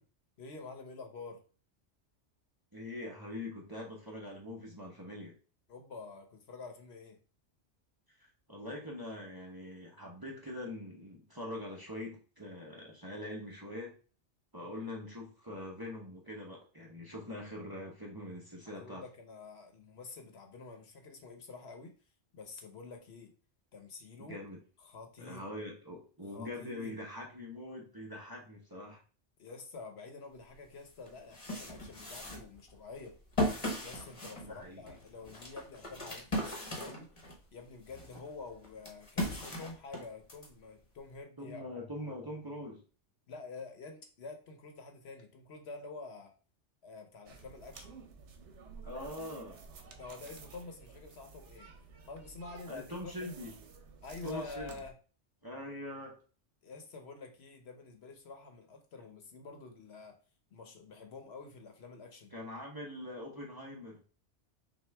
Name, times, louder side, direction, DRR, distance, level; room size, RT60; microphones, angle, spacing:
voice 1, 0.4-1.4 5.7-7.2 14.6-14.8 18.7-21.9 22.3-23.3 23.7-24.4 24.8-25.5 26.3-27.0 29.4-33.2 33.8-37.1 37.5-41.8 43.3-46.3 46.8-48.0 49.8-51.7 52.1-53.3 54.0-54.9 56.6-60.2 60.5-62.3, left 4 dB, 65° left, 5 dB, 1.1 m, -48 dB
voice 2, 2.7-5.3 8.2-13.9 14.5-19.0 24.2-24.6 25.2-29.0 34.4-35.3 41.4-42.8 48.8-49.6 52.7-53.5 54.2-54.8 55.4-56.2 62.3-64.0, left 1 dB, 20° right, -2 dB, 0.9 m, -43 dB
sound 1, 30.5-30.6 31.1-37.4 37.9-40.5, left 1 dB, 30° left, 1.1 m, -37 dB
sound 2, 47.3-54.9, right 4 dB, 75° right, 1.1 m, -52 dB
5.8 x 2.5 x 3.4 m, 0.38 s
omnidirectional pair, 1.2 m